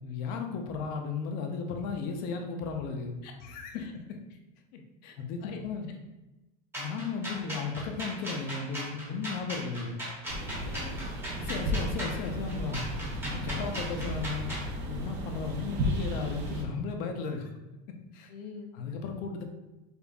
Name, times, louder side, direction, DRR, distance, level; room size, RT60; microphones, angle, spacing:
voice 1, 0.0-3.1 3.4-4.0 5.2-5.9 6.8-10.0 11.3-12.9 13.2-14.5 14.9-17.5 18.1-18.3 18.8-19.4, left 5 dB, 45° left, 4 dB, 0.5 m, -35 dB
voice 2, 4.7-5.6 5.9-6.0 10.6-11.0 13.1-13.2 18.3-18.7, left 5 dB, 85° left, 3 dB, 0.6 m, -47 dB
sound 1, 6.7-14.7, equal, 10° right, 0.9 m, -38 dB
sound 2, 10.3-16.6, equal, 50° right, 0.6 m, -34 dB
5.1 x 2.4 x 2.3 m, 1.0 s
cardioid pair, 165°, 21 cm